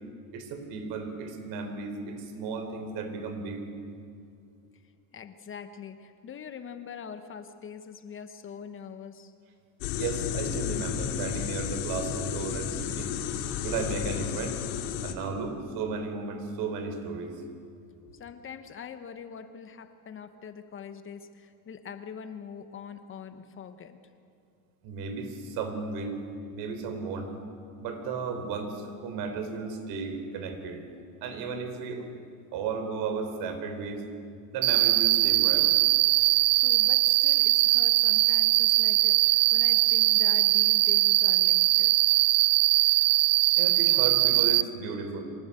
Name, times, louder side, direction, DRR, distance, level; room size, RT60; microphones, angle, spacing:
voice 1, 0.3-3.6 9.9-13.1 13.6-14.6 15.0-17.4 18.0-18.1 24.8-26.2 26.5-27.3 27.8-30.8 31.2-32.1 32.5-34.1 34.5-35.8 43.5-45.2, right 4 dB, 60° right, 7 dB, 4.0 m, -34 dB
voice 2, 5.1-9.3 18.1-24.0 36.5-42.0, left 7 dB, 30° left, 9 dB, 1.1 m, -43 dB
sound 1, 9.8-15.1, left 9 dB, 80° left, 2.3 m, -32 dB
Cricket, 34.6-44.6, right 17 dB, 40° right, 0.5 m, -21 dB
24.0 x 19.0 x 8.4 m, 2.4 s
supercardioid pair, 130°, 42 cm